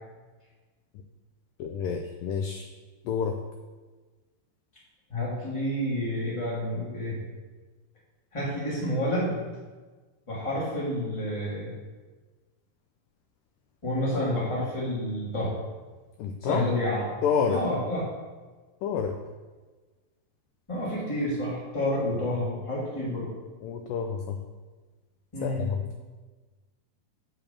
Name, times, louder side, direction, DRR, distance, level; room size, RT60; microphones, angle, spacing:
voice 1, 1.6-2.7 3.1-3.4 16.2-16.6 17.2-17.6 18.8-19.2 23.6-24.4 25.4-25.8, left 6 dB, 85° left, 5 dB, 1.9 m, -28 dB
voice 2, 5.1-7.2 8.3-9.4 10.3-11.7 13.8-15.5 16.4-17.0 17.5-18.0 20.7-23.3 25.3-25.7, left 1 dB, 10° left, -7 dB, 1.9 m, -29 dB
7.6 x 4.8 x 7.1 m, 1.3 s
omnidirectional pair, 4.4 m